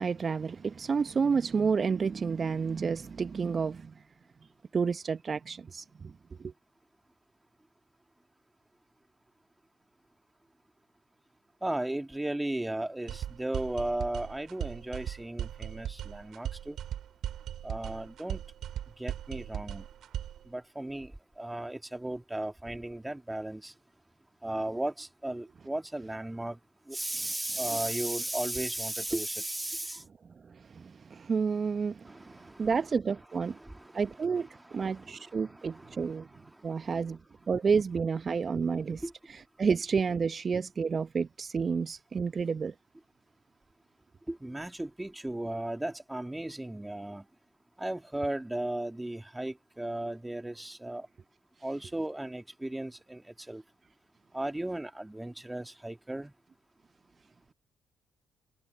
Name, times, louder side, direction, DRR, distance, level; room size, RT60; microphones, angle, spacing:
voice 1, 0.0-3.9 4.7-6.1 6.4-6.5 30.5-33.6 33.9-36.3 36.6-37.2 37.5-39.0 39.3-42.7, right 5 dB, 40° right, 1.0 m, -30 dB
voice 2, 11.6-16.8 17.6-18.4 19.0-19.8 20.5-21.1 21.4-23.7 24.4-26.6 26.9-30.0 32.0-32.7 33.4-36.3 38.5-38.6 39.0-39.1 44.3-47.2 47.8-51.1 51.6-53.6 54.3-56.3, right 1 dB, 10° right, 2.7 m, -36 dB
sound 1, 13.1-20.5, right 10 dB, 60° right, 3.6 m, -38 dB
figure-of-eight pair, 40°, 0 cm